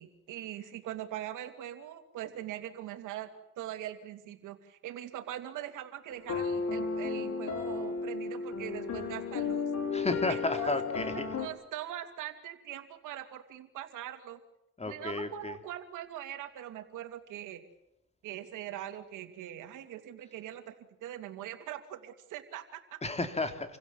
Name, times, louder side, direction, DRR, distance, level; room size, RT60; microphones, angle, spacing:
voice 1, 0.0-3.3 3.6-9.7 10.3-10.7 11.1-14.4 14.8-17.6 18.2-20.7 21.0-23.0, right 12 dB, 90° right, 8 dB, 2.7 m, -42 dB
sound 1, 6.1-11.5, left 5 dB, 65° left, 4.6 m, -34 dB
voice 2, 9.9-11.3 14.8-15.6 23.0-23.8, left 2 dB, 20° left, 8 dB, 3.1 m, -33 dB
28.0 x 16.5 x 9.6 m, 0.86 s
cardioid pair, 90°, 30 cm